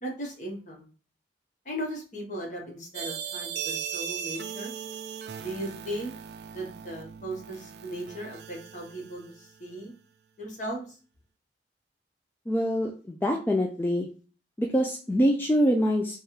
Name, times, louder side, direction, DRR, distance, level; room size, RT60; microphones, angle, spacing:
voice 1, 0.0-0.9 1.6-4.7 5.4-6.1 6.5-9.2 9.6-9.9 10.4-10.9, right 1 dB, 45° left, -1 dB, 1.2 m, -37 dB
sound 1, 2.9-9.7, right 8 dB, 65° right, 0.4 m, -38 dB
voice 2, 12.5-14.1 14.6-16.2, equal, 10° left, 1 dB, 0.3 m, -25 dB
3.3 x 2.4 x 4.4 m, 0.37 s
head